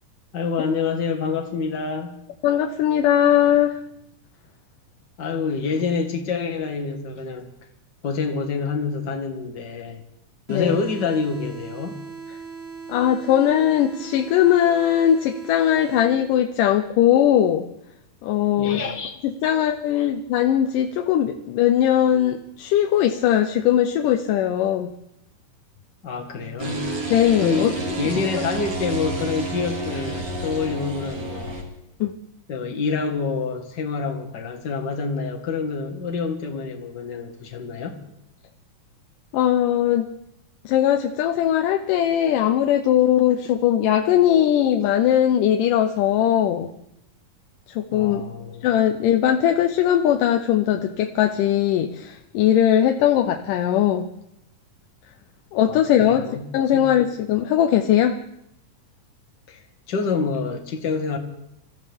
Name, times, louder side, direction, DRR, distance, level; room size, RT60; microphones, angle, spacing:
voice 1, 0.3-2.2 5.2-7.5 8.0-10.0 10.5-12.0 18.6-19.2 19.4-19.5 20.0-20.1 26.0-26.9 27.4-31.6 32.5-38.0 47.9-48.7 55.7-56.9 59.5-59.6 59.9-61.2, left 5 dB, 40° left, 3 dB, 1.8 m, -27 dB
voice 2, 2.4-3.8 10.5-10.8 12.9-17.7 18.2-18.8 19.2-24.9 27.1-27.7 32.0-32.1 39.3-40.1 40.7-46.7 47.7-48.2 48.6-54.1 55.5-56.2 56.5-58.2, left 10 dB, 80° left, 5 dB, 2.3 m, -19 dB
sound 1, 10.5-16.5, right 5 dB, 70° right, 3.4 m, -39 dB
sound 2, 26.6-31.6, right 2 dB, 30° right, 3.2 m, -30 dB
26.5 x 14.5 x 3.5 m, 0.81 s
omnidirectional pair, 3.9 m